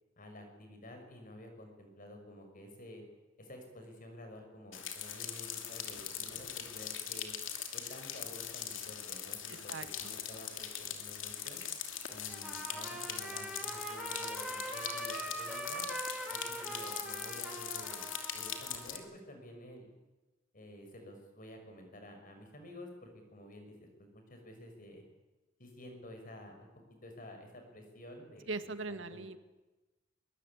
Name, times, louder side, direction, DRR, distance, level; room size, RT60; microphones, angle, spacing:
voice 1, 0.2-3.0 3.4-7.3 7.7-11.6 12.1-15.8 16.3-18.0 18.3-19.9 20.5-23.9 24.1-25.0 25.6-26.7 27.0-29.2, left 1 dB, 45° left, 5 dB, 6.1 m, -51 dB
sound 1, 4.7-19.0, left 9 dB, 75° left, 2.8 m, -41 dB
voice 2, 9.5-10.1 28.5-29.4, right 3 dB, 70° right, 10 dB, 1.8 m, -41 dB
Trumpet, 12.3-19.1, right 2 dB, 5° right, 3.6 m, -42 dB
22.0 x 21.5 x 8.9 m, 1.1 s
head